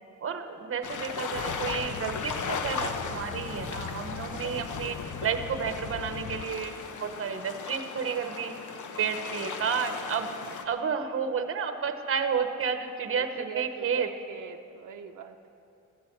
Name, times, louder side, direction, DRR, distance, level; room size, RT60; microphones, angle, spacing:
voice 1, 0.2-6.7 7.0-8.6 9.0-10.3 10.7-14.1, right 6 dB, 45° right, 8 dB, 1.0 m, -31 dB
sound 1, 0.8-10.7, left 5 dB, 80° left, 1.0 m, -37 dB
sound 2, 1.3-6.4, left 6 dB, 55° left, 0.7 m, -40 dB
voice 2, 13.1-15.5, right 8 dB, 80° right, 5 dB, 0.7 m, -43 dB
17.0 x 13.5 x 4.6 m, 2.8 s
wide cardioid pair, 135°, 30 cm